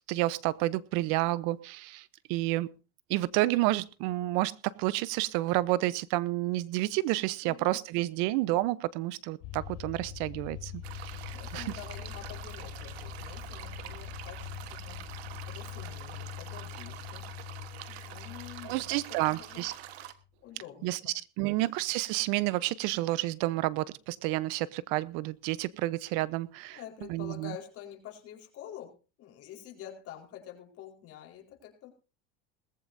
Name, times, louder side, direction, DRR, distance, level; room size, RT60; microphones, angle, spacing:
voice 1, 0.1-2.7 3.1-11.7 17.8-18.0 18.6-19.7 20.8-21.0 21.4-27.5, right 18 dB, 65° right, 18 dB, 0.9 m, -30 dB
voice 2, 7.4-7.8 11.3-15.0 15.5-17.3 17.9-19.6 20.4-21.1 21.5-21.7 26.7-31.9, left 11 dB, 50° left, 1 dB, 4.6 m, -47 dB
sound 1, 9.4-20.1, left 9 dB, 75° left, 2.6 m, -43 dB
sound 2, 10.8-20.1, right 13 dB, 85° right, 1.4 m, -46 dB
20.0 x 15.0 x 2.7 m, 0.33 s
supercardioid pair, 105°, 30 cm